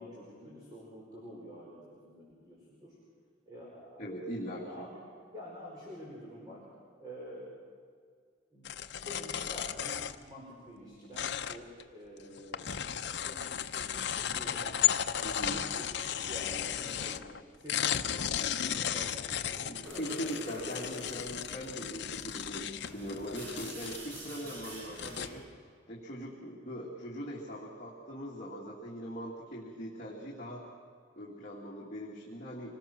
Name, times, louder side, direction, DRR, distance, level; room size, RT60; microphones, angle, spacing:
voice 1, 0.0-2.9 3.5-4.1 4.4-5.0 5.3-6.6 7.0-7.5 8.5-8.7 9.0-10.0 10.3-12.9 13.2-14.8 15.4-17.2 17.6-17.9 18.4-20.2, equal, 20° right, -6 dB, 5.0 m, -48 dB
voice 2, 4.0-4.9 15.2-15.6 19.7-25.5 25.9-30.6 31.2-32.8, equal, 40° left, -5 dB, 2.6 m, -41 dB
sound 1, 8.6-10.3 11.1-11.8 12.2-17.4 17.7-24.2 24.6-24.7 25.0-25.3, left 9 dB, 65° left, 0.7 m, -34 dB
sound 2, 19.8-25.4, equal, 80° right, 6.9 m, -46 dB
25.5 x 19.5 x 6.2 m, 2.1 s
head